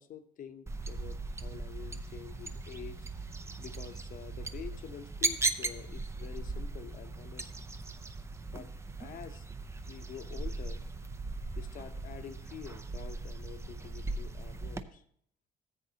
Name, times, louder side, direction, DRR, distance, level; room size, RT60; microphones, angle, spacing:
voice 1, 0.0-3.1 3.6-7.5 8.5-8.7 9.0-9.5 9.9-10.8 11.6-15.0, left 8 dB, 55° left, 0.8 m, -47 dB
sound 1, 0.7-14.8, right 3 dB, 15° right, 0.5 m, -38 dB
14.5 x 7.8 x 2.8 m
cardioid pair, 110°, 17 cm